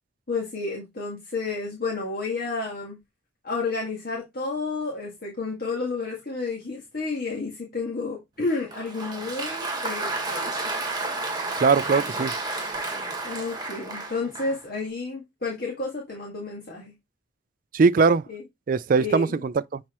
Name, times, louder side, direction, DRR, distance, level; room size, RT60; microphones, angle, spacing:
voice 1, 0.3-3.0 3.4-10.7 13.2-16.9 18.3-18.4 19.0-19.4, left 3 dB, 50° left, 1.9 m, -31 dB
Applause, 8.5-14.7, right 2 dB, 20° right, 1.6 m, -31 dB
voice 2, 11.6-12.3 17.7-18.2 18.7-19.8, right 4 dB, 45° right, 0.3 m, -21 dB
7.5 x 4.2 x 3.0 m
head